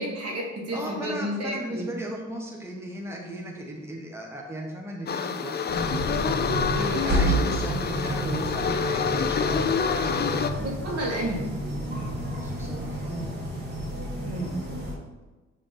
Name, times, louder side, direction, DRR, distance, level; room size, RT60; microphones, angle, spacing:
voice 1, 0.0-1.9 6.7-7.3 10.6-11.5 14.2-14.6, right 1 dB, 55° right, -1 dB, 1.8 m, -31 dB
voice 2, 0.7-5.6 7.0-9.6 9.9-10.5 12.3-13.4, right 1 dB, 10° right, -1 dB, 1.1 m, -36 dB
sound 1, 5.1-10.5, left 6 dB, 35° left, 0.5 m, -27 dB
sound 2, 5.7-14.9, right 1 dB, 35° right, 1.8 m, -30 dB
6.4 x 3.5 x 5.7 m, 1.2 s
cardioid pair, 90°, 30 cm